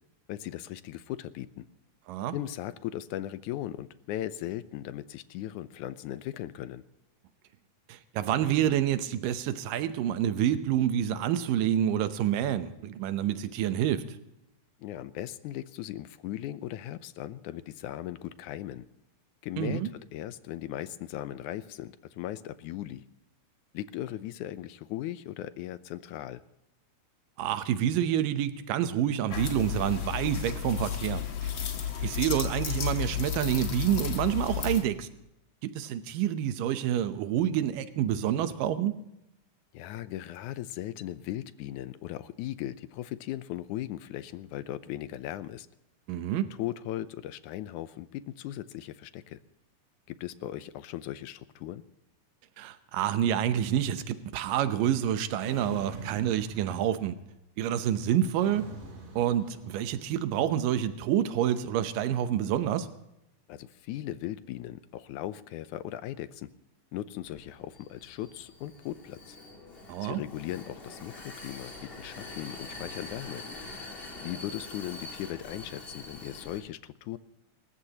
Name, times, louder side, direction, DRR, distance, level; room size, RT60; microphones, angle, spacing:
voice 1, 0.3-1.7 2.3-6.8 14.8-18.9 19.4-19.8 20.1-23.0 23.7-26.4 31.6-31.8 39.7-45.7 46.6-49.4 50.1-51.8 63.5-66.5 66.9-69.4 70.0-73.4 74.2-77.2, left 13 dB, 80° left, 13 dB, 2.0 m, -38 dB
voice 2, 7.9-14.0 19.6-19.9 27.4-31.5 32.0-35.1 35.6-38.9 46.1-46.5 52.6-57.1 57.6-58.7 59.2-62.9 69.9-70.2, right 10 dB, 85° right, 10 dB, 2.6 m, -28 dB
sound 1, 29.3-34.8, left 9 dB, 45° left, 1.9 m, -32 dB
sound 2, 55.4-57.3 58.4-60.2, right 2 dB, 45° right, 3.7 m, -44 dB
Vehicle, 67.2-76.6, left 2 dB, 20° left, 1.8 m, -45 dB
27.5 x 14.5 x 2.9 m, 0.86 s
omnidirectional pair, 3.8 m